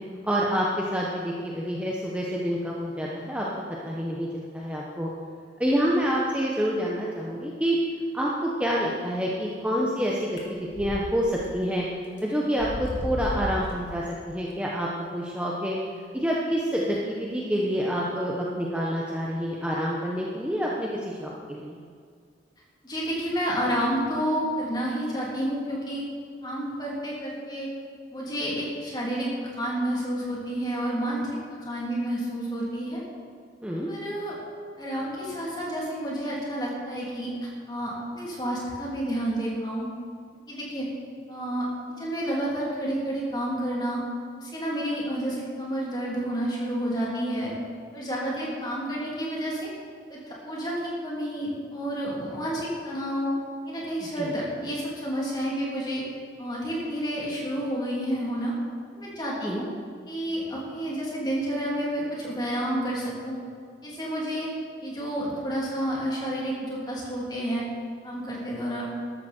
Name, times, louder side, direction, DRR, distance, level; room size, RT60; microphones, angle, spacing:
voice 1, 0.2-3.5 3.8-5.1 5.6-7.8 8.1-10.2 10.5-11.8 12.2-21.8 33.6-33.9 54.2-54.3 59.4-59.6, equal, 5° right, -4 dB, 1.1 m, -27 dB
sound 1, 10.4-11.0 11.4-11.5 12.2-12.3 12.6-13.7, equal, 85° left, 2.9 m, -32 dB
voice 2, 22.8-26.0 26.4-27.7 28.1-31.3 31.6-33.0 33.9-34.4 34.8-39.9 40.5-40.9 41.3-41.7 42.0-44.0 44.4-47.5 47.9-49.7 50.1-53.3 53.6-56.0 56.4-58.5 58.9-59.6 60.1-63.4 63.8-64.5 64.8-67.6 68.0-68.8, equal, 20° left, -5 dB, 3.4 m, -30 dB
14.0 x 12.5 x 4.5 m, 2.1 s
head